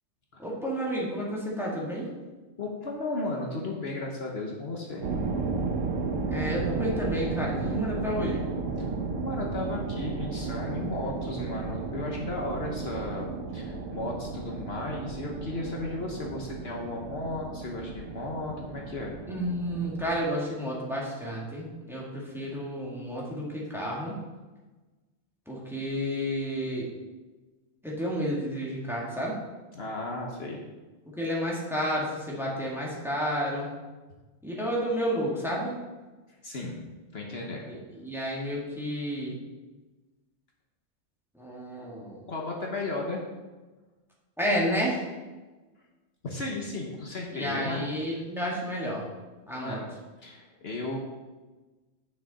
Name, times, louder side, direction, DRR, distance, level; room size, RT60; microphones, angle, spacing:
voice 1, 0.4-2.1 6.3-8.5 19.3-24.2 25.5-26.9 27.8-29.4 31.2-33.7 34.4-35.8 37.6-39.4 41.3-42.2 44.4-45.0 47.3-49.1 49.5-49.8, equal, ahead, -5 dB, 2.0 m, -31 dB
voice 2, 2.6-5.0 8.8-8.9 9.2-19.1 29.7-30.6 36.4-36.8 37.1-37.7 42.3-43.2 46.2-47.9 49.5-49.9 50.2-51.0, left 2 dB, 55° left, -1 dB, 1.3 m, -35 dB
sound 1, 5.0-20.2, right 4 dB, 90° right, 1.3 m, -34 dB
9.6 x 6.2 x 4.2 m, 1.2 s
omnidirectional pair, 1.3 m